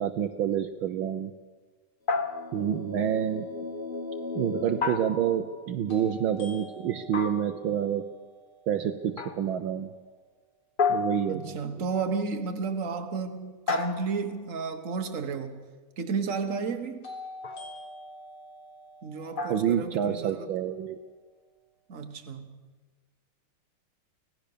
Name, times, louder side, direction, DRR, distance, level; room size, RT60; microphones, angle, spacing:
voice 1, 0.0-1.3 2.5-3.5 4.3-8.0 8.7-9.9 10.9-11.5 19.5-21.0, right 9 dB, 70° right, 1.6 m, -28 dB
sound 1, 2.1-2.8 4.8-5.7 7.1-7.7 9.2-9.6 10.8-11.7 13.7-14.5 17.4-17.8 19.3-19.9, left 4 dB, 50° left, 0.6 m, -31 dB
sound 2, 2.1-6.0, left 3 dB, 30° left, 1.3 m, -38 dB
sound 3, 3.9-4.0 5.9-9.8 17.0-21.1, left 1 dB, 75° left, 4.5 m, -47 dB
voice 2, 11.3-15.7 16.0-17.1 19.0-20.5 21.9-22.6, right 5 dB, 40° right, 1.7 m, -32 dB
25.5 x 17.5 x 6.8 m
omnidirectional pair, 2.4 m